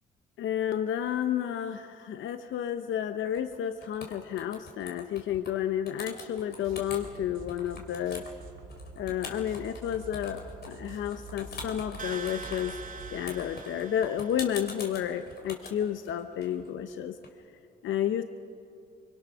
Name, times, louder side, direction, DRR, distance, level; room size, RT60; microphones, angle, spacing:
voice 1, 0.4-8.2 9.0-10.4 10.7-12.8 13.1-17.2 17.8-18.2, left 10 dB, 75° left, 9 dB, 0.8 m, -31 dB
sound 1, 3.3-3.6 3.8-5.5 5.9-7.1 7.5-17.3, left 4 dB, 55° left, 3.5 m, -44 dB
sound 2, 6.6-13.2, right 3 dB, 80° right, 2.5 m, -47 dB
sound 3, 12.0-14.9, right 5 dB, 40° right, 2.6 m, -43 dB
24.0 x 23.5 x 6.2 m, 2.7 s
cardioid pair, 90°, 20 cm